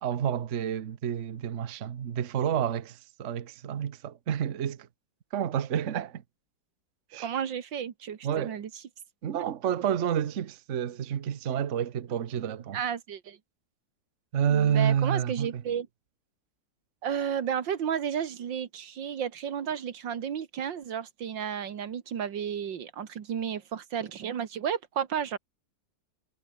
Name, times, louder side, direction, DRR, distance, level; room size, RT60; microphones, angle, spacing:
voice 1, 0.0-4.9 5.3-6.2 7.1-7.3 8.2-8.6 9.2-12.8 14.3-15.6, right 9 dB, 50° right, 1.1 m, -29 dB
voice 2, 7.2-8.7 12.7-13.4 14.5-15.9 17.0-25.4, right 8 dB, 80° right, 2.2 m, -32 dB
omnidirectional pair, 2.0 m